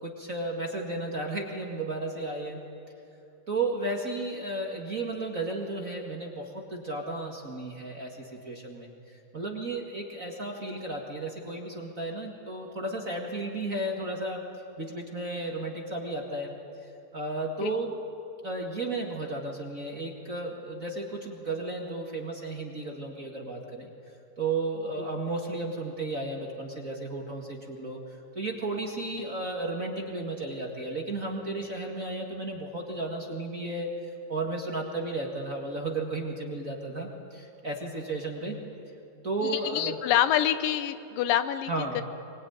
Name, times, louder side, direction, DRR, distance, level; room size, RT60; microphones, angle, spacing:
voice 1, 0.0-2.6 3.5-14.4 14.8-16.5 17.1-17.9 18.4-23.9 24.4-28.0 28.3-33.9 34.3-38.6 39.2-40.0 41.7-42.0, right 2 dB, 30° right, 0 dB, 1.8 m, -33 dB
voice 2, 39.5-42.0, left 11 dB, 85° left, 11 dB, 2.6 m, -26 dB
24.5 x 20.5 x 9.5 m, 2.7 s
omnidirectional pair, 3.9 m